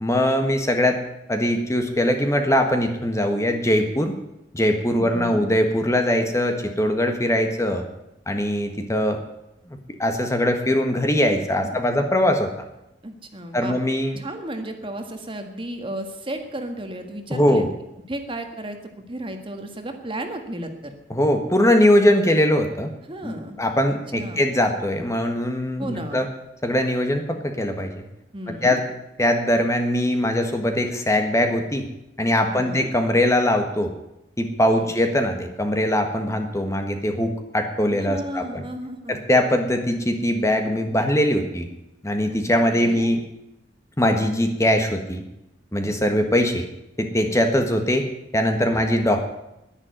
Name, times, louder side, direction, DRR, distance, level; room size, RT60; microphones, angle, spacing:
voice 1, 0.0-1.0 1.3-4.1 4.5-7.9 8.3-9.2 9.7-12.5 13.5-14.2 17.3-17.7 21.1-22.9 23.2-26.3 26.6-28.0 28.5-28.8 29.2-31.9 32.2-33.9 34.4-38.6 39.1-41.7 42.0-43.2 44.0-45.2 45.7-46.7 47.0-48.1 48.3-49.2, left 1 dB, 15° left, 5 dB, 1.6 m, -21 dB
voice 2, 4.9-5.5 11.6-11.8 13.0-13.8 14.2-17.7 18.1-18.8 19.1-20.9 23.1-23.6 24.1-24.5 25.8-26.3 28.3-28.8 32.5-32.9 34.7-34.9 37.9-39.2 42.7-43.1 48.6-48.8, right 1 dB, 30° right, 5 dB, 1.7 m, -34 dB
11.0 x 10.5 x 9.5 m, 0.86 s
head